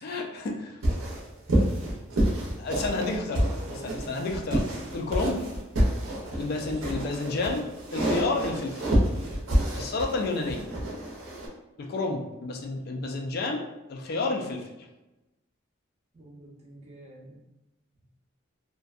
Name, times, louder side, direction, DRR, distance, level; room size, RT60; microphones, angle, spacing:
voice 1, 0.0-0.8 2.6-3.4 3.7-4.6 4.9-5.5 6.3-7.6 7.9-8.9 9.7-10.6 11.8-13.6 13.9-14.7, left 3 dB, 50° left, 2 dB, 0.3 m, -30 dB
sound 1, 0.8-11.5, equal, 80° right, 0.6 m, -28 dB
voice 2, 3.4-4.1 6.5-6.9 16.1-17.4, right 1 dB, 30° right, -3 dB, 0.5 m, -45 dB
2.5 x 2.2 x 2.3 m, 1.0 s
head